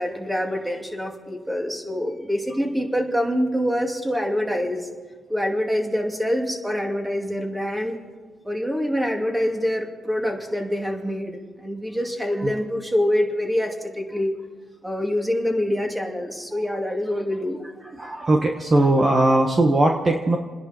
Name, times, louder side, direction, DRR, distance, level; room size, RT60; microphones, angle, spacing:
voice 1, 0.0-4.9 5.3-8.0 8.4-14.4 14.8-17.6, equal, 5° right, 2 dB, 2.6 m, -25 dB
voice 2, 18.0-20.4, right 2 dB, 30° right, 2 dB, 1.4 m, -19 dB
29.5 x 10.5 x 4.5 m, 1.4 s
cardioid pair, 90°, 0 cm